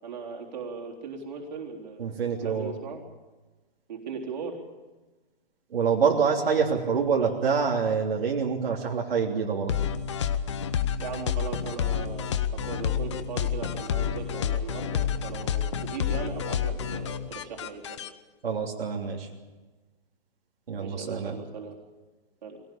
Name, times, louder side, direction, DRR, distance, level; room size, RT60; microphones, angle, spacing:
voice 1, 0.0-3.0 3.9-4.6 7.2-7.3 11.0-18.0 20.8-21.7 22.4-22.6, right 5 dB, 45° right, 0 dB, 3.9 m, -38 dB
voice 2, 2.0-2.7 5.7-9.7 18.4-19.3 20.7-21.4, right 6 dB, 75° right, -1 dB, 3.3 m, -26 dB
sound 1, 9.7-18.1, left 8 dB, 30° left, 0.8 m, -29 dB
22.5 x 18.0 x 8.6 m, 1.2 s
hypercardioid pair, 170°, 30 cm